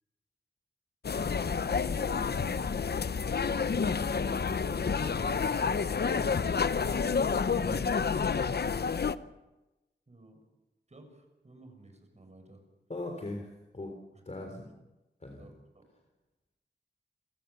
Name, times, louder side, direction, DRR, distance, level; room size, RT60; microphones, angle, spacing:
sound 1, 1.0-9.2, left 5 dB, 65° left, 0.8 m, -29 dB
voice 1, 2.1-2.8 7.6-7.9 12.9-13.5 13.7-13.9 14.3-14.7 15.2-15.5, left 2 dB, 40° left, 3 dB, 3.7 m, -40 dB
voice 2, 4.3-5.3 10.1-10.4 10.9-12.6 14.1-14.2 15.4-15.9, right 1 dB, 40° right, 5 dB, 7.1 m, -53 dB
28.5 x 14.0 x 7.2 m, 1.0 s
wide cardioid pair, 60°, 18 cm